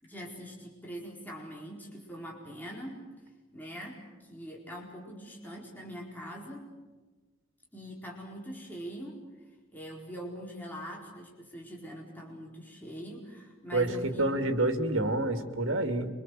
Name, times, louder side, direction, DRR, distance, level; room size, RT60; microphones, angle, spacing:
voice 1, 0.0-3.0 3.5-6.6 7.7-9.2 9.7-14.4, equal, 10° left, -2 dB, 4.4 m, -43 dB
voice 2, 13.7-16.1, right 2 dB, 65° right, 6 dB, 2.8 m, -28 dB
28.5 x 25.0 x 7.8 m, 1.3 s
head